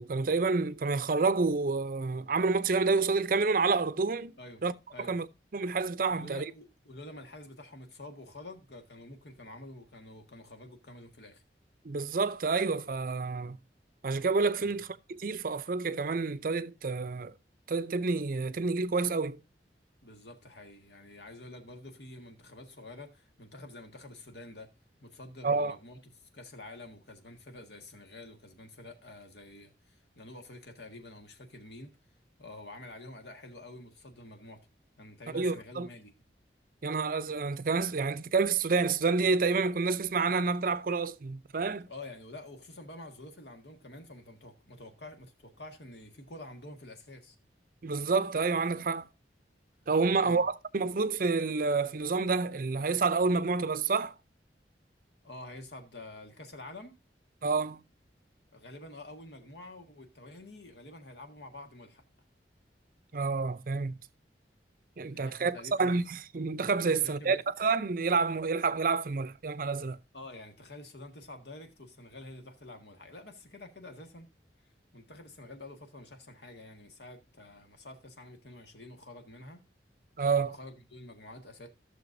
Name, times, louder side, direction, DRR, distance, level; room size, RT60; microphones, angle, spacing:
voice 1, 0.0-4.3 4.6-4.7 5.0-5.3 5.5-6.4 11.8-13.6 14.0-17.3 17.7-19.4 25.4-25.8 35.3-35.9 36.8-41.9 47.8-49.1 49.9-54.1 57.4-57.8 63.1-63.9 65.0-70.0 80.2-80.5, right 4 dB, 50° right, 0.5 m, -29 dB
voice 2, 6.1-11.4 14.6-14.7 20.0-24.7 25.0-26.0 26.3-31.9 32.4-34.6 35.0-36.1 41.9-47.3 50.0-50.4 55.2-56.9 58.5-62.0 65.1-66.0 67.0-67.4 70.1-74.3 74.9-79.6 80.4-81.7, left 2 dB, 70° left, 1.7 m, -48 dB
14.5 x 6.6 x 2.6 m
head